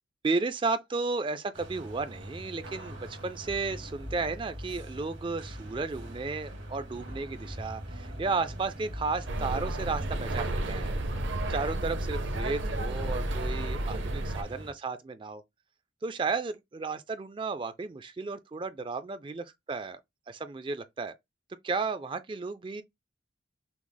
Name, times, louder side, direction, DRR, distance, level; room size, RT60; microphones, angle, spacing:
voice 1, 0.2-10.9 11.5-15.4 16.0-20.0 20.3-21.1 21.6-22.8, right 4 dB, 25° right, 0.3 m, -33 dB
sound 1, 1.5-14.7, equal, 90° right, 1.8 m, -42 dB
sound 2, 9.3-14.4, right 1 dB, 70° right, 0.8 m, -32 dB
6.0 x 2.0 x 3.8 m
head